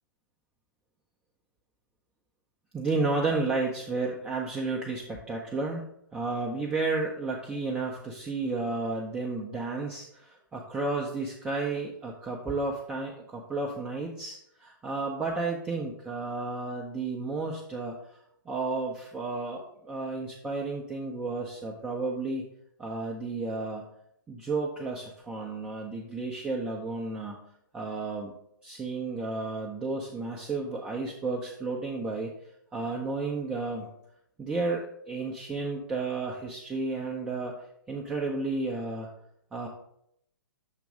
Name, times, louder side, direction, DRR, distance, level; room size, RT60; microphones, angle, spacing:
voice 1, 2.7-5.8 6.1-18.2 18.5-22.4 22.8-23.8 24.3-27.4 27.7-28.3 28.6-32.3 32.7-33.9 34.4-37.5 37.9-39.1 39.5-39.7, right 3 dB, 10° right, -2 dB, 0.6 m, -32 dB
7.2 x 3.0 x 4.8 m, 0.74 s
figure-of-eight pair, 120°, 12 cm